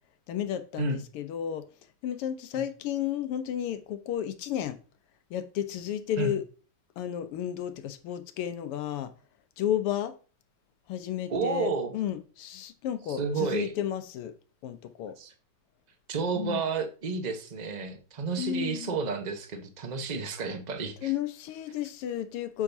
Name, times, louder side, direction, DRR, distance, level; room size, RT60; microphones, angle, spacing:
voice 1, 0.3-1.7 2.0-4.8 5.3-6.4 7.0-9.1 9.6-10.1 10.9-14.3 14.6-15.2 16.4-16.6 18.4-19.0 21.0-22.6, left 10 dB, 85° left, 1.8 m, -32 dB
voice 2, 11.3-11.9 13.1-13.7 15.2-15.3 16.1-21.1, right 5 dB, 35° right, 0.7 m, -31 dB
7.6 x 7.3 x 2.7 m
omnidirectional pair, 2.4 m